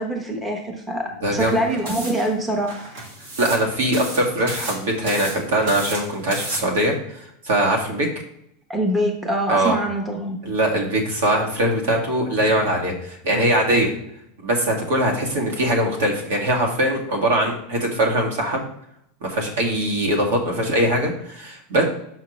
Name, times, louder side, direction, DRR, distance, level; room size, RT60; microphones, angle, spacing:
voice 1, 0.0-2.7 8.7-10.4, right 1 dB, 10° right, 2 dB, 0.8 m, -24 dB
voice 2, 1.2-1.8 3.4-7.2 7.4-8.1 9.5-9.8 10.4-13.9 14.4-18.6 19.2-21.8, right 1 dB, 85° right, 0 dB, 1.9 m, -21 dB
sound 1, 1.4-6.6, right 1 dB, 55° right, 1.7 m, -34 dB
6.5 x 5.6 x 3.1 m, 0.77 s
supercardioid pair, 175°, 0 cm